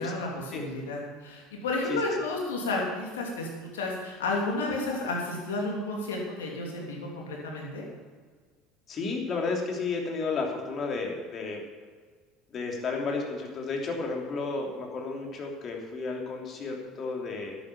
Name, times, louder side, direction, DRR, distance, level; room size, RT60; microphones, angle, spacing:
voice 1, 0.0-7.9, left 2 dB, 85° left, -1 dB, 3.0 m, -32 dB
voice 2, 8.9-11.6 12.5-17.6, left 4 dB, 45° left, 0 dB, 3.2 m, -32 dB
11.0 x 9.1 x 7.1 m, 1.5 s
hypercardioid pair, 75°, 0 cm